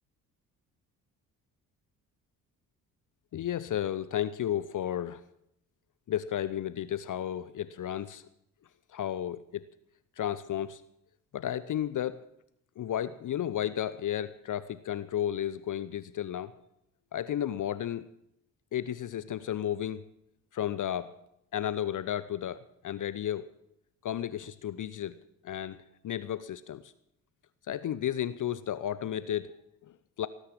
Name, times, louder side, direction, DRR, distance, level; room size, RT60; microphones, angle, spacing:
voice 1, 3.3-5.2 6.1-8.3 8.9-9.6 10.2-10.8 11.3-12.2 12.8-16.5 17.1-18.1 18.7-20.0 20.5-21.1 21.5-23.5 24.0-25.2 25.4-26.9 27.7-30.3, left 11 dB, 40° left, 15 dB, 0.8 m, -33 dB
18.5 x 9.9 x 7.6 m, 0.77 s
figure-of-eight pair, 45°, 48 cm